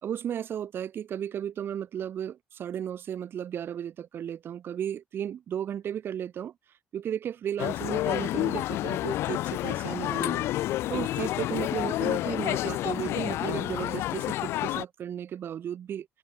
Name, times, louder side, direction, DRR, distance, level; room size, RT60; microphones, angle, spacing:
voice 1, 0.0-6.5 6.9-10.5 10.9-16.1, right 9 dB, 55° right, 4.8 m, -34 dB
sound 1, 7.6-14.8, left 15 dB, 75° left, 0.4 m, -29 dB
supercardioid pair, 80°, 4 cm